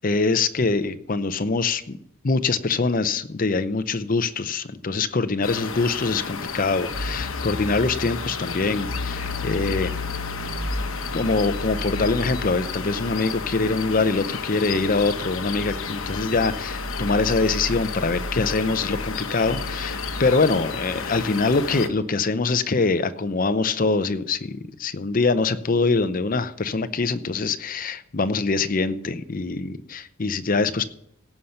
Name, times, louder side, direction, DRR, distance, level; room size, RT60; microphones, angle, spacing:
voice 1, 0.0-2.0 2.2-10.0 11.1-30.8, left 3 dB, 40° left, 12 dB, 0.6 m, -24 dB
sound 1, 5.4-21.9, left 4 dB, 75° left, 1.0 m, -30 dB
17.0 x 5.8 x 6.6 m, 0.72 s
head